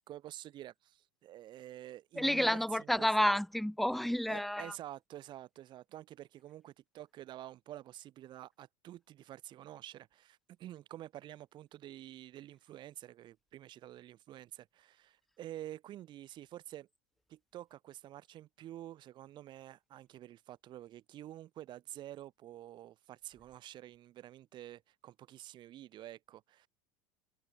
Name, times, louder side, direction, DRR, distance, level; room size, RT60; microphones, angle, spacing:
voice 1, 0.1-3.1 4.3-16.9 17.3-26.7, right 13 dB, 35° right, 1.1 m, -49 dB
voice 2, 2.2-4.7, left 1 dB, ahead, 0.6 m, -30 dB
supercardioid pair, 145°, 13 cm